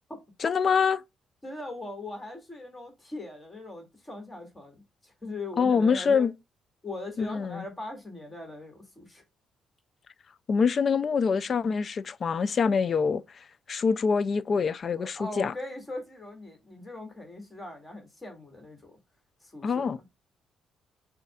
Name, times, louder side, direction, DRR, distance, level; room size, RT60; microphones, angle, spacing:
voice 1, 0.4-1.0 5.6-6.3 7.2-7.6 10.5-13.2 13.7-15.5 19.6-20.0, left 5 dB, 45° left, 0.3 m, -25 dB
voice 2, 1.4-6.3 6.8-9.2 15.0-19.0 19.4-20.0, left 2 dB, 20° left, 2.3 m, -40 dB
6.5 x 2.6 x 2.3 m
cardioid pair, 90°, 0 cm